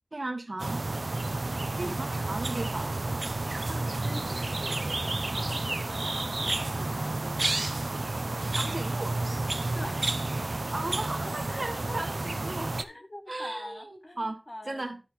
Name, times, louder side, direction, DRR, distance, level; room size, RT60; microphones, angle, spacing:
voice 1, 0.1-0.8 1.8-2.9 3.4-3.7 8.5-9.2 10.7-12.7 13.3-13.9 14.2-14.4 14.7-15.0, right 2 dB, 70° right, 1.4 m, -36 dB
sound 1, 0.6-12.8, right 2 dB, 85° right, 0.6 m, -31 dB
voice 2, 3.7-7.5 9.7-10.3 10.7-12.3 12.8-14.9, left 1 dB, 45° left, 1.7 m, -44 dB
10.0 x 8.5 x 3.2 m
wide cardioid pair, 40°, 0 cm